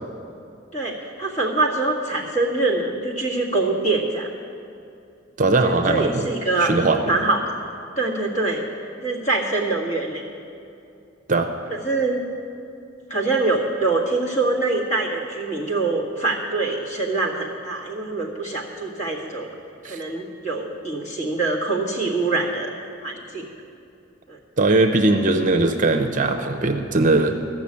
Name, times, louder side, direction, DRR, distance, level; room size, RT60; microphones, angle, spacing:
voice 1, 0.7-4.3 5.6-6.8 7.0-7.5 8.0-8.7 9.0-10.2 11.7-12.3 13.1-19.5 19.8-22.7 23.0-23.5 24.3-24.4, right 3 dB, 40° left, -2 dB, 1.9 m, -24 dB
voice 2, 5.4-6.3 6.6-7.1 11.3-11.5 19.8-20.0 24.6-27.3, right 2 dB, 40° right, 5 dB, 0.7 m, -19 dB
14.0 x 6.2 x 8.6 m, 2.6 s
head